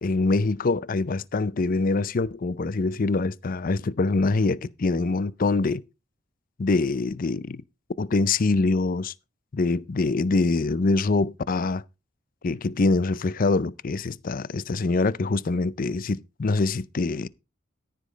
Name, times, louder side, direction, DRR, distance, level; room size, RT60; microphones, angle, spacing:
voice 1, 0.0-5.8 6.6-7.6 8.0-9.1 9.5-11.8 12.4-17.3, left 3 dB, 45° left, 0.5 m, -24 dB
13.5 x 5.2 x 5.1 m
head